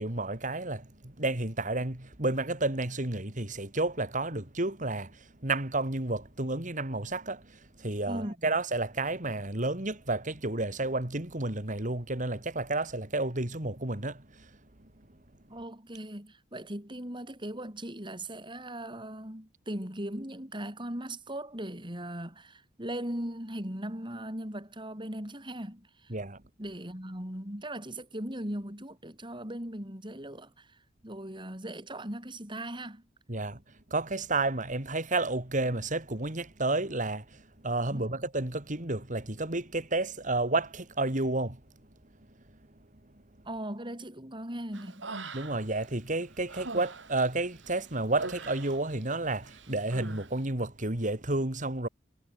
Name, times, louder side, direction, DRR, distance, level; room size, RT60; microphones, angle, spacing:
voice 1, 0.0-14.5 26.1-26.4 33.3-33.6 33.9-41.6 45.3-51.9, right 2 dB, 45° right, 3.1 m, -31 dB
voice 2, 8.1-8.5 15.5-26.1 26.6-30.8 31.0-33.1 37.8-38.1 43.5-45.2, right 1 dB, 25° right, 7.2 m, -39 dB
Human voice, 44.7-45.8 46.2-49.1 49.4-50.3, right 3 dB, 85° right, 3.4 m, -42 dB
head